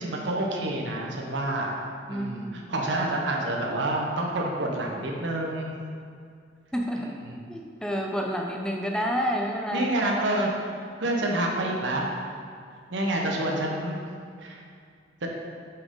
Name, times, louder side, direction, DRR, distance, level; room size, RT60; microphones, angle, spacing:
voice 1, 0.0-1.8 2.1-5.7 7.0-7.4 9.7-10.5 11.0-12.1 12.9-14.0 14.4-14.6 15.2-15.3, right 1 dB, 75° right, 0 dB, 0.9 m, -28 dB
voice 2, 2.1-2.7 6.7-7.1 7.5-9.9, equal, 5° left, 0 dB, 0.4 m, -29 dB
7.7 x 4.2 x 3.8 m, 2.2 s
head